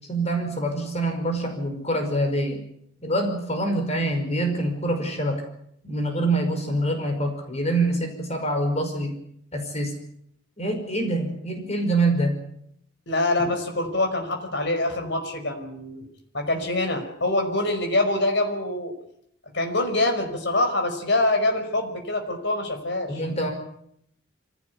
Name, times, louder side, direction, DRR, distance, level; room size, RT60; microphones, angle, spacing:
voice 1, 0.1-2.6 3.0-5.4 5.8-9.1 9.5-10.0 10.6-12.3 13.4-13.5 23.1-23.5, right 1 dB, 35° left, 5 dB, 5.3 m, -25 dB
voice 2, 13.1-16.1 16.3-18.9 19.5-23.2, left 2 dB, 60° left, 5 dB, 5.5 m, -25 dB
24.5 x 17.0 x 9.7 m, 0.73 s
head